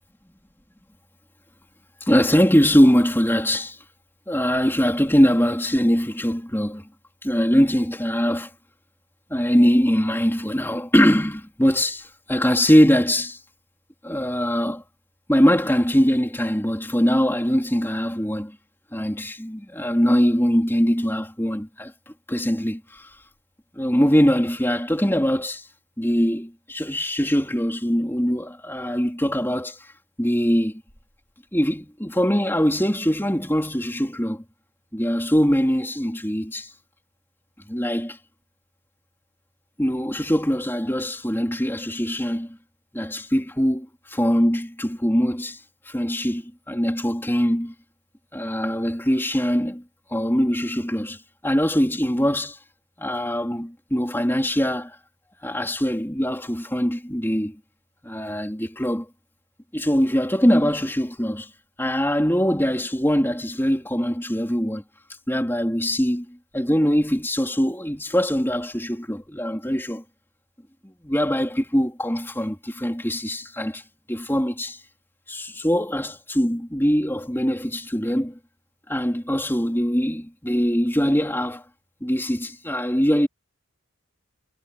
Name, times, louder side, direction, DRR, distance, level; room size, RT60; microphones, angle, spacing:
voice 1, 2.0-3.8 4.3-6.9 7.2-8.5 9.3-13.4 14.0-14.8 15.3-18.6 18.9-21.9 22.3-23.2 23.8-25.7 26.0-29.9 30.2-30.8 31.5-34.4 34.9-36.7 37.7-38.2 39.8-42.6 42.9-45.6 45.9-47.7 48.3-49.8 50.1-52.6 53.0-55.0 55.4-57.6 58.0-59.1 59.7-61.5 61.8-64.8 65.3-70.0 70.8-73.8 74.1-74.8 75.3-78.4 78.9-81.6 82.0-83.3, equal, 10° left, 4.0 m, -22 dB
head